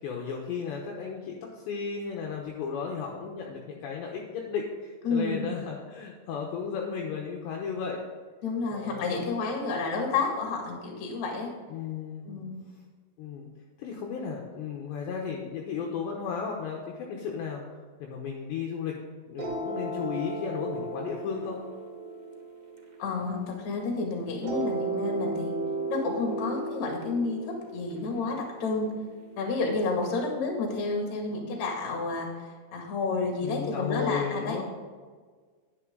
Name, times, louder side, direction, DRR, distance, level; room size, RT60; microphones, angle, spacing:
voice 1, 0.0-8.0 8.7-9.2 11.7-12.3 13.2-13.5 13.8-17.6 18.0-21.6 33.4-34.7, left 6 dB, 75° left, -1 dB, 2.9 m, -34 dB
voice 2, 5.0-5.5 8.4-11.5 12.2-12.6 23.0-25.6 25.9-28.9 29.4-34.6, left 3 dB, 45° left, 1 dB, 2.6 m, -30 dB
sound 1, 19.4-23.8 24.4-29.4, right 2 dB, 50° right, 2.8 m, -35 dB
11.0 x 10.5 x 3.8 m, 1.5 s
omnidirectional pair, 5.8 m